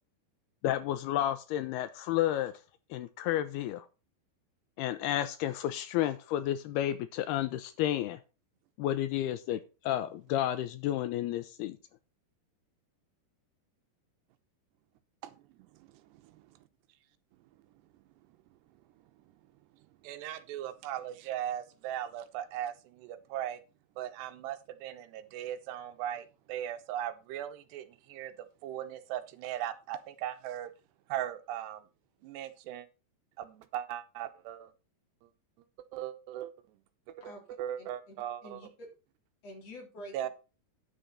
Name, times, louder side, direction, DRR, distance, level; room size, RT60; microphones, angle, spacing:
voice 1, 0.6-2.5 2.9-3.9 4.8-8.2 8.8-11.8, left 12 dB, 80° left, 12 dB, 2.5 m, -31 dB
voice 2, 15.8-16.5 20.0-23.6 24.0-28.3 28.6-30.7 31.1-31.9 32.2-32.9 33.4-34.7 35.9-36.5 37.1-37.2 37.6-38.6 40.1-40.3, right 11 dB, 85° right, 10 dB, 3.0 m, -38 dB
voice 3, 37.8-38.1 38.4-38.9 39.4-40.3, equal, 40° left, 0 dB, 4.0 m, -47 dB
10.0 x 7.8 x 4.2 m, 0.31 s
omnidirectional pair, 4.9 m